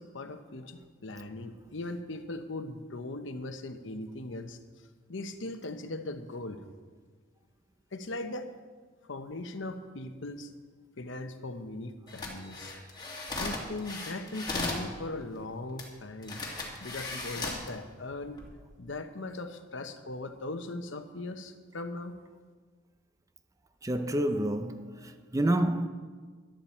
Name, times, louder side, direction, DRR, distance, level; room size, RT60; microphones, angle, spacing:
voice 1, 0.0-4.6 5.1-6.6 7.9-8.5 9.1-10.5 11.0-12.7 13.3-16.4 16.8-18.4 18.8-22.2, left 2 dB, 70° left, 0.9 m, -39 dB
sound 1, 12.1-14.9 15.8-15.9 16.2-17.7 18.2-18.5, left 2 dB, 20° left, 2.2 m, -36 dB
voice 2, 23.8-25.9, right 1 dB, 15° right, 0.5 m, -28 dB
14.0 x 11.5 x 4.4 m
head